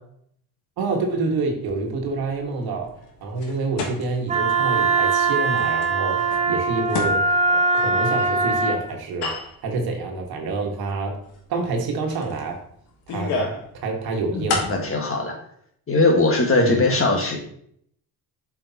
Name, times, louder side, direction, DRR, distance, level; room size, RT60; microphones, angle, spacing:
voice 1, 0.8-7.2 7.5-9.3 9.6-11.1 11.5-12.6 13.1-13.5 13.8-14.6 16.6-16.9, right 3 dB, 70° right, 2 dB, 1.5 m, -27 dB
sound 1, 1.6-4.7 5.1-5.3 5.6-8.4 9.0-9.7 10.2-10.3 11.2-11.4 11.7-11.8 12.1-13.7 14.0-14.8, left 3 dB, 80° left, 1.4 m, -31 dB
Wind instrument woodwind instrument, 4.3-8.8, right 3 dB, 20° right, 0.8 m, -21 dB
voice 2, 14.3-15.4 15.9-17.4, left 2 dB, 35° left, 2 dB, 1.6 m, -20 dB
7.1 x 5.0 x 2.8 m, 0.67 s
supercardioid pair, 80°, 38 cm